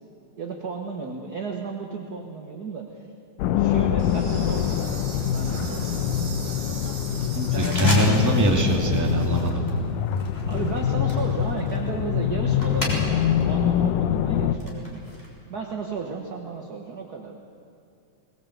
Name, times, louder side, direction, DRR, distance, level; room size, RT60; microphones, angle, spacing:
voice 1, 0.4-3.1 3.6-5.0 5.3-6.0 7.3-8.6 10.4-15.1 15.5-17.3, right 4 dB, 50° right, 1 dB, 1.1 m, -34 dB
sound 1, 3.4-14.6, left 9 dB, 85° left, 2.3 m, -25 dB
Insect, 4.0-9.5, right 3 dB, 75° right, 4.9 m, -40 dB
sound 2, 7.6-8.5 8.8-9.2 9.7-13.4 13.8-15.3, equal, 10° left, 3.8 m, -34 dB
voice 2, 7.6-9.6, equal, 5° right, 0 dB, 1.6 m, -22 dB
21.0 x 19.0 x 8.1 m, 2.5 s
omnidirectional pair, 3.6 m